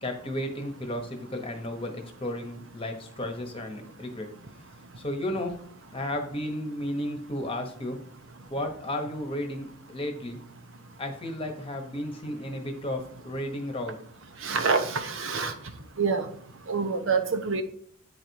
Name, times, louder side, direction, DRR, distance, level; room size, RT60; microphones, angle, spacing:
voice 1, 0.0-4.3 5.0-5.5 5.9-8.0 8.5-9.7 9.9-10.4 11.0-14.0, left 1 dB, 25° left, 4 dB, 1.1 m, -33 dB
voice 2, 14.4-15.5 16.0-16.3 16.7-17.6, right 5 dB, 60° right, 7 dB, 0.8 m, -26 dB
8.8 x 4.1 x 4.7 m, 0.63 s
head